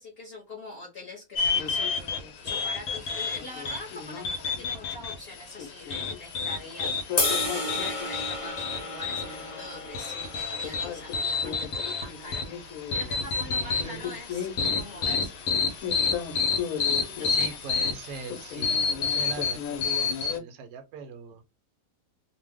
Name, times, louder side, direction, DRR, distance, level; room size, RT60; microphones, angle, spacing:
voice 1, 0.0-6.9 7.3-12.4 12.9-15.4 17.2-17.7, left 2 dB, 50° left, -3 dB, 1.0 m, -44 dB
sound 1, 1.4-20.4, left 5 dB, 75° left, 1.1 m, -30 dB
sound 2, 7.2-13.4, left 1 dB, 25° left, 1.1 m, -34 dB
voice 2, 12.9-14.1 16.8-21.4, right 4 dB, 80° right, 6 dB, 1.1 m, -42 dB
2.6 x 2.1 x 3.4 m, 0.24 s
omnidirectional pair, 1.5 m